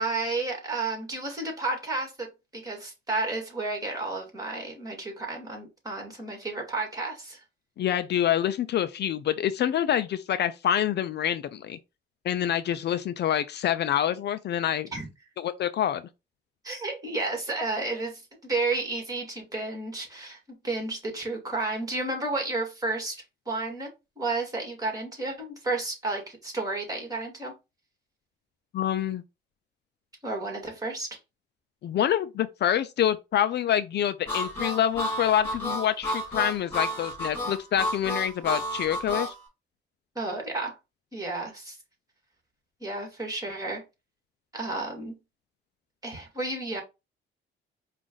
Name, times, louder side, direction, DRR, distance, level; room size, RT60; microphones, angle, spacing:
voice 1, 0.0-7.4 14.9-15.1 16.6-27.5 30.2-31.2 40.2-40.8 41.1-41.8 42.8-43.8 44.5-45.2 46.0-46.8, right 2 dB, 20° right, 2.2 m, -32 dB
voice 2, 7.8-11.8 12.2-14.9 15.4-16.0 28.7-29.2 31.8-39.3, left 10 dB, 60° left, 0.5 m, -26 dB
Harmonica, 34.3-39.3, left 1 dB, 10° left, 2.8 m, -31 dB
4.9 x 2.5 x 3.8 m
cardioid pair, 90°, 20 cm